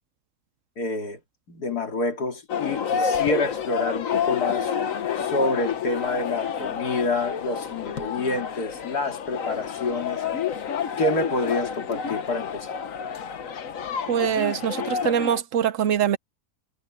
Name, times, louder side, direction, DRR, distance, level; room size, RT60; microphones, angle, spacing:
voice 1, 0.8-1.2 1.5-4.7 5.2-10.2 11.0-12.8, left 2 dB, 85° left, 3.1 m, -28 dB
sound 1, 2.5-15.4, left 7 dB, 60° left, 1.5 m, -29 dB
voice 2, 14.1-16.2, right 9 dB, 60° right, 1.0 m, -23 dB
omnidirectional pair, 1.6 m